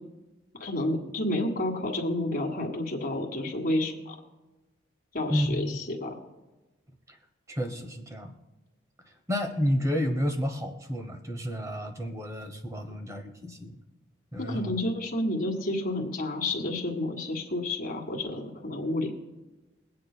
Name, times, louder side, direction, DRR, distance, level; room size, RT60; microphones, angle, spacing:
voice 1, 0.6-4.1 5.1-6.2 14.4-19.1, left 1 dB, 45° left, 1 dB, 1.7 m, -30 dB
voice 2, 7.5-8.3 9.3-13.7 14.3-14.7, equal, 15° right, 5 dB, 0.9 m, -30 dB
23.5 x 8.5 x 2.2 m, 1.1 s
head